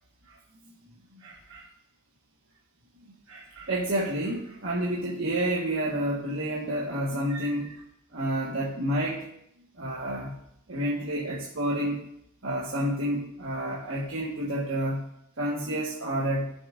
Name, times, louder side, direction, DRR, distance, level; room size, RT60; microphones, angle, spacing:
voice 1, 1.1-1.7 3.0-7.8 8.1-9.2 9.8-10.4 10.7-12.0 12.4-15.1 15.4-16.5, right 1 dB, 60° right, -5 dB, 1.5 m, -30 dB
15.5 x 7.0 x 2.5 m, 0.74 s
head